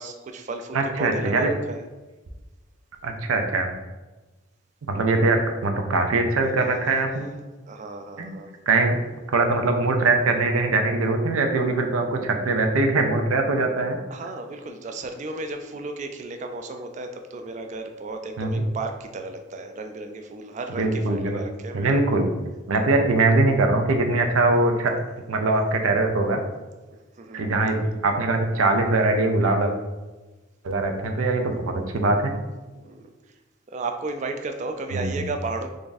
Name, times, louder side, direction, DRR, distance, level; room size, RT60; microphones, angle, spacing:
voice 1, 0.0-1.9 7.7-8.5 14.1-22.0 27.2-27.6 32.7-33.0 33.7-35.7, right 3 dB, 35° right, 5 dB, 0.3 m, -34 dB
voice 2, 0.7-1.5 3.0-3.7 4.9-7.3 8.2-8.3 8.7-9.0 9.3-14.0 18.4-18.6 20.8-21.4 21.7-22.3 22.7-24.9 25.3-26.4 27.3-29.7 30.6-32.3 34.9-35.3, right 2 dB, 85° right, 4 dB, 0.5 m, -22 dB
3.4 x 2.5 x 3.9 m, 1.2 s
head